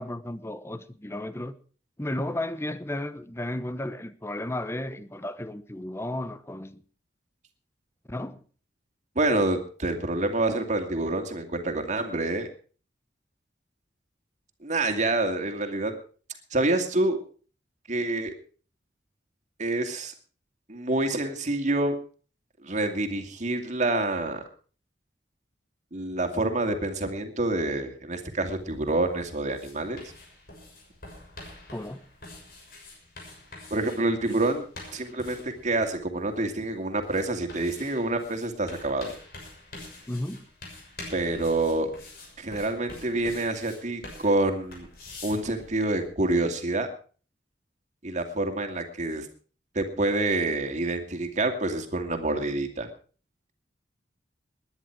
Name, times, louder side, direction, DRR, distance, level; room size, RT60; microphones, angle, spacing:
voice 1, 0.0-1.6 2.0-6.8 8.1-8.4 31.7-32.0 40.1-40.4, left 1 dB, 15° left, 0.9 m, -33 dB
voice 2, 9.2-12.5 14.6-15.9 16.5-17.2 17.9-18.3 19.6-20.1 20.7-21.9 22.6-24.4 25.9-30.0 33.7-34.6 34.9-39.1 41.1-41.9 42.4-44.9 45.2-46.9 48.0-49.3 49.7-52.9, right 2 dB, 40° right, 2.5 m, -27 dB
sound 1, 28.4-46.1, left 2 dB, 55° left, 6.5 m, -47 dB
20.0 x 10.5 x 4.7 m
head